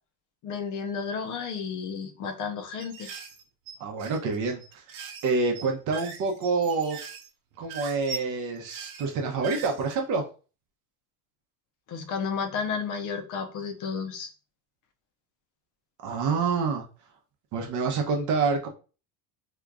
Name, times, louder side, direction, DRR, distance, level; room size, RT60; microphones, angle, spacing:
voice 1, 0.4-3.1 11.9-14.3, left 6 dB, 45° left, 0.7 m, -32 dB
sound 1, 2.8-10.0, right 5 dB, 75° right, 0.9 m, -41 dB
voice 2, 3.8-4.8 5.2-7.0 7.6-10.2 16.0-16.8 17.5-18.7, right 4 dB, 45° right, 0.7 m, -27 dB
2.9 x 2.4 x 3.5 m
cardioid pair, 145°, 44 cm